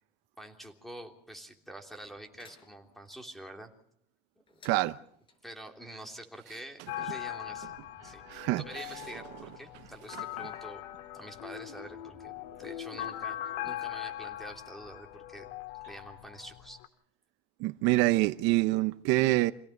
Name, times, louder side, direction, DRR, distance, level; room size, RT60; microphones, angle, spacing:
voice 1, 0.4-3.7 4.4-4.5 5.4-10.8 11.1-15.5 15.9-16.8, right 1 dB, ahead, 3.3 m, -47 dB
sound 1, 2.4-3.2 4.5-5.4, left 4 dB, 25° left, 4.8 m, -58 dB
voice 2, 4.6-5.0 8.3-8.6 17.6-19.5, right 19 dB, 65° right, 0.8 m, -25 dB
sound 2, 6.9-16.9, left 13 dB, 80° left, 1.9 m, -41 dB
27.0 x 17.5 x 6.7 m
cardioid pair, 145°, 20 cm